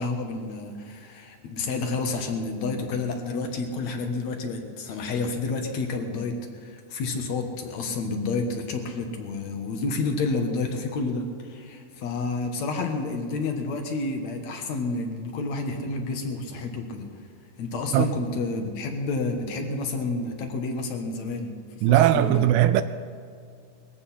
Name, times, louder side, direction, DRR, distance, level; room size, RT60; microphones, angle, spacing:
voice 1, 0.0-17.1 17.6-22.5, left 3 dB, 60° left, 2.1 m, -30 dB
voice 2, 21.8-22.8, right 13 dB, 80° right, 2.4 m, -19 dB
21.0 x 15.5 x 4.3 m
omnidirectional pair, 4.7 m